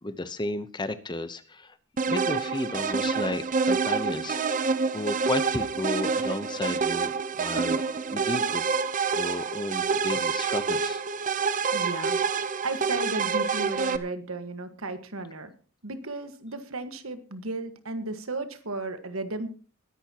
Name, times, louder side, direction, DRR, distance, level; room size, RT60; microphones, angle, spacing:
voice 1, 0.0-1.8 2.1-7.8 8.1-8.6 9.1-11.0, left 2 dB, 20° left, 12 dB, 0.8 m, -33 dB
sound 1, 2.0-14.0, right 5 dB, 35° right, 0.7 m, -27 dB
voice 2, 11.7-12.2 12.4-15.5 15.8-19.5, right 2 dB, 65° right, 9 dB, 1.5 m, -34 dB
21.0 x 11.0 x 2.9 m, 0.36 s
head